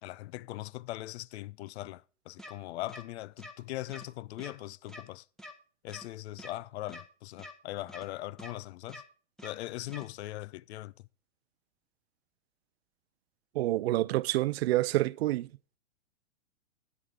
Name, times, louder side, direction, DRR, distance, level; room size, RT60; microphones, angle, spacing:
voice 1, 0.0-5.2 5.8-9.0 9.4-10.9, left 16 dB, 60° left, 0.5 m, -40 dB
sound 1, 2.4-2.5 2.9-3.0 3.4-3.5 3.9-4.0 4.4-4.5 4.9-5.0 5.4-5.5 5.9-6.0 6.4-6.5 6.9-7.0 7.4-7.5 7.9-8.0 8.4-8.5 8.9-9.0 9.4-9.5 9.9-10.0, left 1 dB, ahead, 1.0 m, -46 dB
voice 2, 13.5-15.5, right 16 dB, 55° right, 0.5 m, -28 dB
11.0 x 8.7 x 3.8 m
hypercardioid pair, 120°, 37 cm